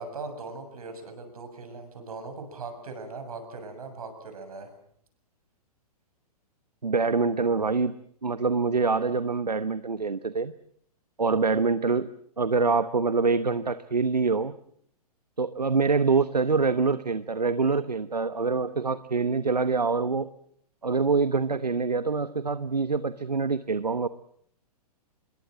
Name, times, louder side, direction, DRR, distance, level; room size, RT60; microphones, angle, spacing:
voice 1, 0.0-4.7, right 3 dB, 65° right, 8 dB, 7.1 m, -39 dB
voice 2, 6.8-7.9 8.2-10.5 11.2-12.1 12.4-14.5 15.4-20.3 20.8-24.1, right 4 dB, 85° right, 14 dB, 1.0 m, -25 dB
26.0 x 22.5 x 7.6 m, 0.67 s
figure-of-eight pair, 115°, 20 cm